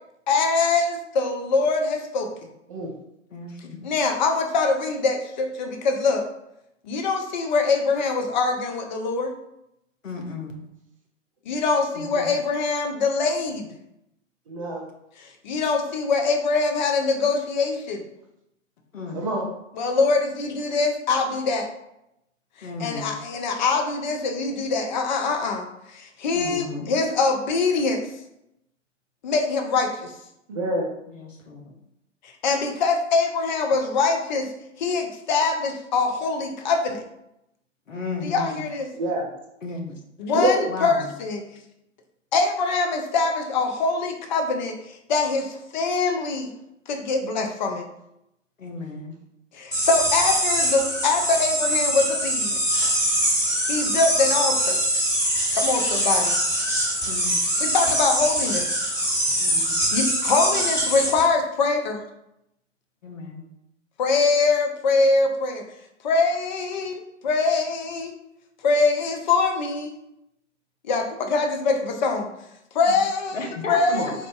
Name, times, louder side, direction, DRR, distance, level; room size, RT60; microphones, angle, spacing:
voice 1, 0.3-2.3 3.8-6.2 6.8-9.3 11.5-13.7 15.2-18.1 19.7-21.7 22.6-28.0 29.2-30.1 32.4-34.5 34.8-37.0 38.2-38.9 40.2-41.4 42.3-46.5 46.9-47.8 49.5-52.5 53.7-54.8 55.5-56.3 57.6-58.7 59.9-62.0 64.0-65.6 66.0-68.1 68.6-69.9 70.8-72.3 72.7-74.1, left 4 dB, 40° left, 4 dB, 0.5 m, -23 dB
voice 2, 3.3-3.9 10.0-10.6 12.0-12.3 18.9-19.2 22.6-23.1 26.3-26.9 31.1-31.7 37.9-38.6 39.6-40.0 40.7-41.1 48.6-49.2 57.1-57.4 59.4-59.8 63.0-63.5 72.9-73.0 73.3-74.1, left 3 dB, 80° left, 2 dB, 0.8 m, -34 dB
voice 3, 14.5-14.8 19.1-19.5 30.5-30.9 38.9-39.3 40.3-40.7 73.9-74.1, right 1 dB, 30° right, -1 dB, 0.4 m, -26 dB
sound 1, 49.7-61.2, equal, 10° left, 1.2 m, -23 dB
4.2 x 2.5 x 2.2 m, 0.83 s
figure-of-eight pair, 120°, 38 cm